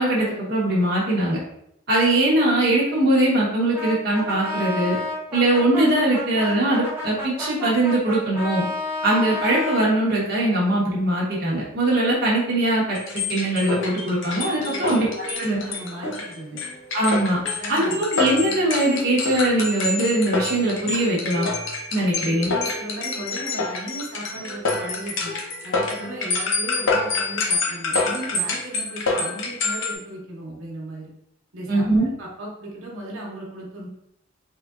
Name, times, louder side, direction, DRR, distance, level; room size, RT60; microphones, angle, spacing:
voice 1, 0.0-1.4 1.9-5.0 5.3-8.6 9.0-13.0 13.3-15.1 15.4-15.6 16.9-17.4 17.7-21.5 21.9-22.5 31.7-32.1, right 1 dB, 50° right, -6 dB, 0.9 m, -21 dB
Brass instrument, 3.7-9.9, left 2 dB, 10° right, 0.6 m, -30 dB
sound 1, 12.9-29.9, left 3 dB, 60° left, 0.7 m, -27 dB
voice 2, 14.7-16.6 17.5-18.0 22.1-25.4 25.6-31.1 31.5-31.8 32.2-33.9, right 1 dB, 80° right, -3 dB, 1.0 m, -36 dB
3.7 x 3.3 x 2.4 m, 0.75 s
head